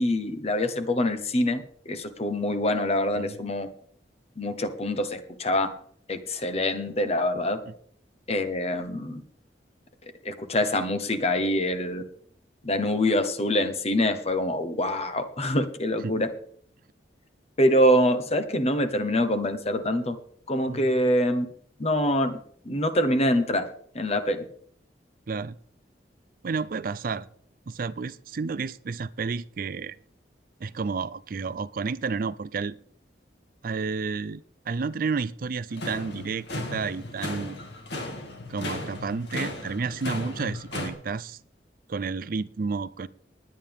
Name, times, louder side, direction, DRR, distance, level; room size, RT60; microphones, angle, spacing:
voice 1, 0.0-3.7 4.4-5.7 6.1-7.6 8.3-9.2 10.2-12.0 12.6-16.3 17.6-20.2 20.5-21.5 21.8-22.4 22.6-23.7 23.9-24.4, left 1 dB, 35° left, 1.2 m, -25 dB
voice 2, 26.4-27.3 27.7-30.0 30.6-32.8 33.6-37.6 38.5-41.4 41.9-43.1, right 4 dB, 50° right, 0.4 m, -31 dB
sound 1, 35.7-40.9, left 2 dB, 70° left, 2.4 m, -35 dB
20.0 x 9.1 x 3.6 m
head